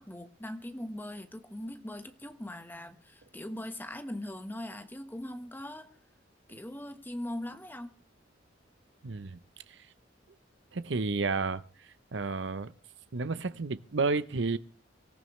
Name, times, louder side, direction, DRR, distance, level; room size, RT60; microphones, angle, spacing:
voice 1, 0.0-6.0 6.5-8.0, left 1 dB, 10° left, 1.3 m, -40 dB
voice 2, 9.0-9.4 9.7-9.8 10.7-11.6 12.1-12.7 13.1-14.6, right 4 dB, 70° right, 0.8 m, -31 dB
25.5 x 14.5 x 3.2 m
head